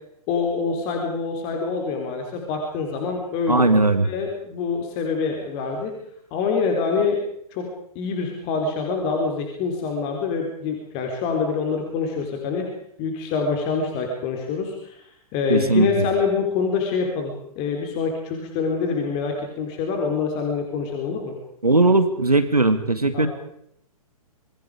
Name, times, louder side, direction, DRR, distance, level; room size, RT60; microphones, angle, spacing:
voice 1, 0.3-3.7 4.0-5.9 6.3-7.2 7.5-7.7 7.9-12.7 13.0-15.1 15.3-21.3 23.1-23.3, left 5 dB, 30° left, 2 dB, 4.1 m, -25 dB
voice 2, 3.5-4.1 15.5-16.1 21.6-23.3, right 2 dB, 85° right, 9 dB, 2.3 m, -18 dB
28.0 x 22.5 x 5.1 m, 0.72 s
figure-of-eight pair, 120°, 19 cm